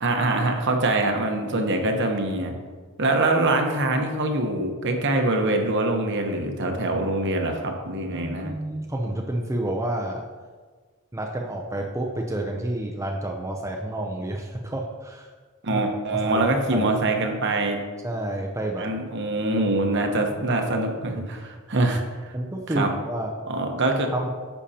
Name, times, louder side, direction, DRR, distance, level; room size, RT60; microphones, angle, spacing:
voice 1, 0.0-2.5 3.0-8.5 15.6-17.8 18.8-22.3 22.7-22.9 23.5-24.1, right 2 dB, 50° right, 3 dB, 1.0 m, -24 dB
voice 2, 8.1-10.3 11.1-15.3 15.7-15.8 16.1-16.4 16.7-16.9 18.0-18.9 22.3-23.3 24.1-24.3, right 1 dB, 15° right, 0 dB, 0.5 m, -29 dB
10.0 x 6.8 x 2.8 m, 1.5 s
head